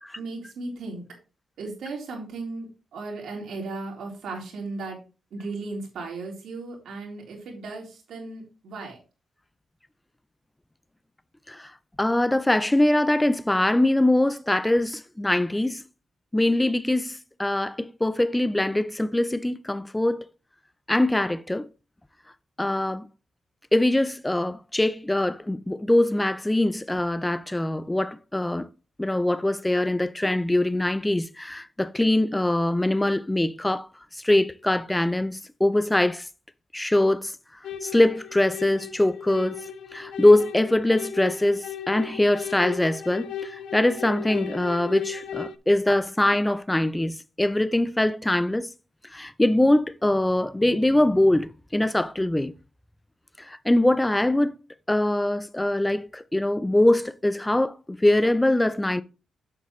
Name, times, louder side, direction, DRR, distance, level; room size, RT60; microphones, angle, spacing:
voice 1, 0.1-1.0 1.6-5.0 5.3-9.0, right 3 dB, 80° right, 3.5 m, -36 dB
voice 2, 12.0-15.8 16.3-20.3 20.9-21.7 22.6-23.1 23.7-28.7 29.0-33.9 34.2-36.3 36.7-37.3 37.8-39.6 39.9-48.7 49.1-52.5 53.5-54.5 54.9-59.0, left 1 dB, 10° left, 0.4 m, -23 dB
sound 1, 37.6-45.6, left 8 dB, 80° left, 0.6 m, -36 dB
8.2 x 7.1 x 3.1 m
cardioid pair, 120°, 0 cm